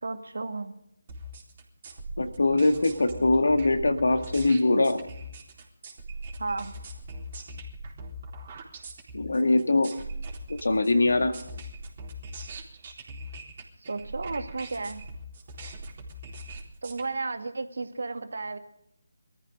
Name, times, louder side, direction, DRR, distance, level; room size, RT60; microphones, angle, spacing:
voice 1, 0.0-0.7 6.4-6.7 13.9-15.0 16.8-18.6, right 3 dB, 60° right, 7 dB, 2.1 m, -33 dB
sound 1, 1.1-17.0, right 1 dB, 35° right, 4.0 m, -41 dB
voice 2, 2.2-5.0 9.1-9.9 10.6-11.3, left 2 dB, 65° left, 7 dB, 2.0 m, -22 dB
23.5 x 14.0 x 3.8 m, 0.74 s
figure-of-eight pair, 155°, 0 cm